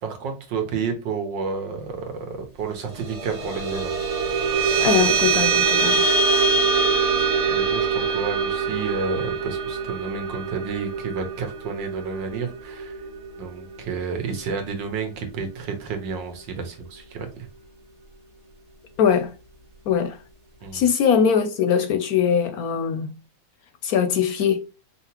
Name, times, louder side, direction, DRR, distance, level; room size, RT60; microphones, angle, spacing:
voice 1, 0.0-3.9 6.5-6.7 7.2-13.0 13.4-17.5 20.6-20.8, right 5 dB, 85° right, 1.7 m, -31 dB
sound 1, 2.8-13.6, right 4 dB, 35° right, 0.7 m, -23 dB
voice 2, 4.8-6.1 19.0-19.3 19.9-20.2 20.7-23.1 23.8-24.7, left 7 dB, 70° left, 0.9 m, -21 dB
4.9 x 2.9 x 2.8 m
omnidirectional pair, 1.9 m